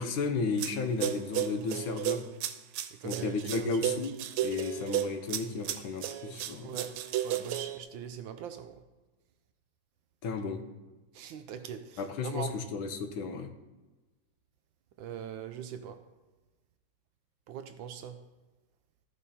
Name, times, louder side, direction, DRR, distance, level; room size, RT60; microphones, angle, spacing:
voice 1, 0.0-2.2 3.0-4.1 4.4-6.7 10.2-10.6 12.0-13.5, left 4 dB, 75° left, 1.6 m, -33 dB
sound 1, 0.6-0.8 1.0-7.8, right 12 dB, 90° right, 1.5 m, -33 dB
voice 2, 3.0-3.7 6.6-7.0 7.2-8.8 11.1-12.5 15.0-16.0 17.5-18.2, right 9 dB, 75° right, 1.3 m, -41 dB
14.0 x 5.5 x 4.2 m
omnidirectional pair, 2.3 m